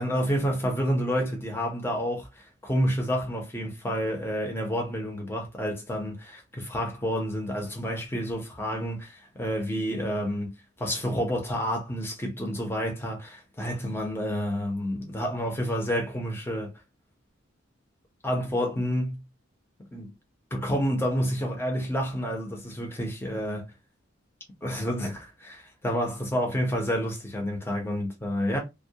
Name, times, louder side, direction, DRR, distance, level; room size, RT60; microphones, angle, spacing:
voice 1, 0.0-10.5 10.8-16.7 18.2-19.2 19.9-20.1 20.5-23.7 24.6-28.6, equal, 10° left, 0.6 m, -29 dB
2.2 x 2.1 x 2.7 m
head